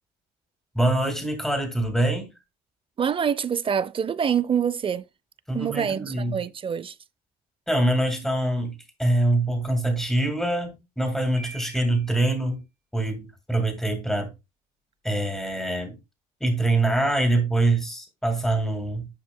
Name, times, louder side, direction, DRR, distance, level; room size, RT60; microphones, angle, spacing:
voice 1, 0.7-2.3 5.5-6.4 7.7-12.6 12.9-14.3 15.0-16.0 16.4-19.1, right 1 dB, 5° left, 2.0 m, -24 dB
voice 2, 3.0-5.0 5.5-6.9, right 7 dB, 30° right, 0.6 m, -25 dB
Piano, 11.4-12.3, right 3 dB, 85° left, 2.1 m, -44 dB
10.5 x 5.0 x 2.2 m
cardioid pair, 110°, 17 cm